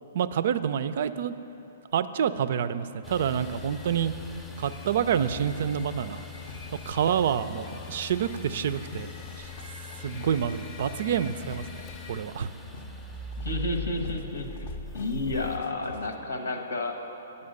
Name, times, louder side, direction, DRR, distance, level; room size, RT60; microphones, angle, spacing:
voice 1, 0.1-1.4 1.9-4.1 4.6-6.2 6.9-9.1 9.4-9.5 10.0-12.5, right 8 dB, 60° right, 13 dB, 0.3 m, -28 dB
sound 1, 3.0-15.6, left 2 dB, 5° left, 0.6 m, -42 dB
sound 2, 3.1-16.2, left 3 dB, 55° left, 0.5 m, -45 dB
voice 2, 13.4-14.6 14.9-17.0, left 2 dB, 85° left, 4 dB, 1.0 m, -31 dB
8.5 x 5.4 x 6.5 m, 2.9 s
hypercardioid pair, 135°, 0 cm